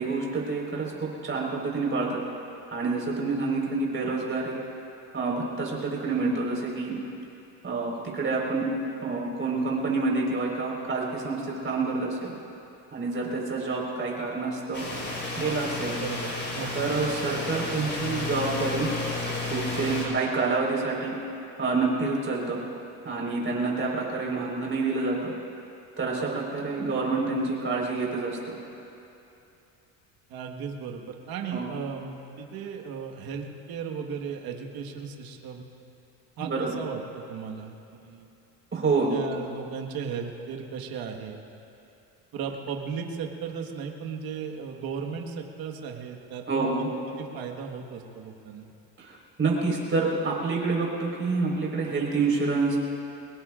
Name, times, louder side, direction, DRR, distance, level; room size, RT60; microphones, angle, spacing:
voice 1, 0.0-2.2 2.7-4.6 5.1-6.9 7.6-8.6 9.0-12.3 12.9-14.9 15.4-16.0 16.7-18.9 19.5-21.1 21.6-22.6 23.0-25.3 26.0-28.6 31.5-31.7 36.4-36.7 38.7-39.2 46.5-46.9 49.0-52.8, right 3 dB, 30° right, -3 dB, 4.5 m, -28 dB
sound 1, 14.7-20.1, left 2 dB, 25° left, 4.5 m, -32 dB
voice 2, 16.0-16.9 19.9-20.2 30.3-35.7 36.4-38.3 39.1-41.4 42.3-46.9 47.2-48.7, right 6 dB, 65° right, 2 dB, 1.6 m, -36 dB
24.0 x 20.5 x 2.5 m, 2.9 s
cardioid pair, 105°, 39 cm